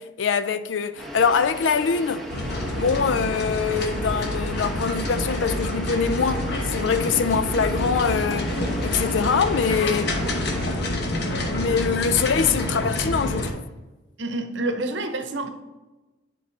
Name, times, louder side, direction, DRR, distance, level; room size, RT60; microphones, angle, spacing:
voice 1, 0.0-2.3 2.8-8.5 8.8-10.1 11.5-13.6, left 6 dB, 90° left, 0.4 m, -24 dB
sound 1, 1.0-10.7, right 1 dB, ahead, 0.9 m, -37 dB
sound 2, 2.3-13.5, left 1 dB, 60° left, 1.0 m, -27 dB
voice 2, 14.2-15.5, right 2 dB, 75° right, 0.8 m, -28 dB
10.0 x 3.9 x 3.3 m
head